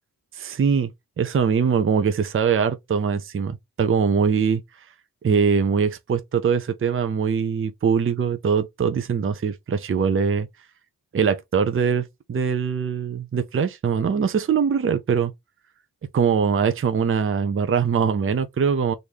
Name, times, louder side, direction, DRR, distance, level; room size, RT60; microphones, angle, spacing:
voice 1, 0.3-0.9 1.2-4.6 5.2-10.5 11.1-15.3 16.1-18.9, right 6 dB, 35° right, 0.5 m, -22 dB
3.0 x 2.6 x 3.5 m
wide cardioid pair, 75°, 36 cm